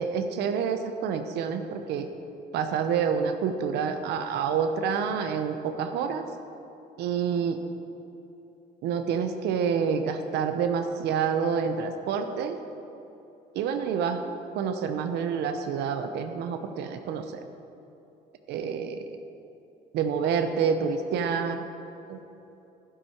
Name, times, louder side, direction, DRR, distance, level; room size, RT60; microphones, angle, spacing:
voice 1, 0.0-2.1 2.5-6.3 7.0-7.6 8.8-12.6 13.5-14.2 14.6-17.4 18.5-19.1 19.9-21.7 22.1-22.2, right 6 dB, 80° right, 7 dB, 0.9 m, -28 dB
11.5 x 11.5 x 4.5 m, 2.8 s
cardioid pair, 110°, 17 cm